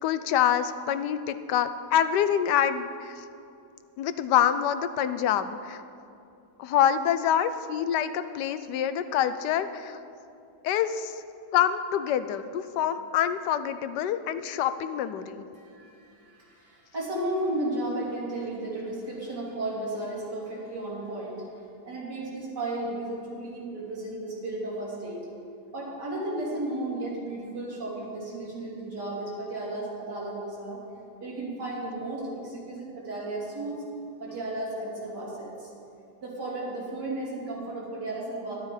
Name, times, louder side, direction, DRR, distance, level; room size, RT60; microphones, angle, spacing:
voice 1, 0.0-3.2 4.0-5.8 6.6-10.0 10.6-11.2 11.5-15.4, left 9 dB, 90° left, 12 dB, 1.2 m, -26 dB
voice 2, 15.6-21.4 21.8-25.2 25.7-30.8 31.2-33.8 34.2-35.7 36.2-38.6, right 1 dB, 85° right, -5 dB, 3.6 m, -34 dB
12.0 x 11.5 x 4.9 m, 2.6 s
omnidirectional pair, 1.8 m